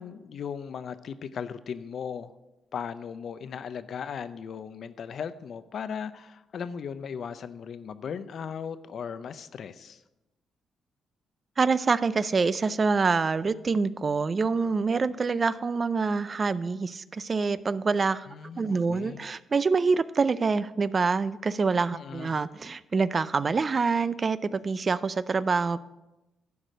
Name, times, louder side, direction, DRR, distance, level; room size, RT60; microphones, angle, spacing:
voice 1, 0.0-2.3 2.7-10.0 18.3-19.3 21.9-22.4, left 7 dB, 60° left, 13 dB, 0.6 m, -37 dB
voice 2, 11.6-18.3 18.6-25.8, right 4 dB, 35° right, 16 dB, 0.4 m, -26 dB
11.5 x 4.9 x 6.5 m, 1.0 s
cardioid pair, 95°, 0 cm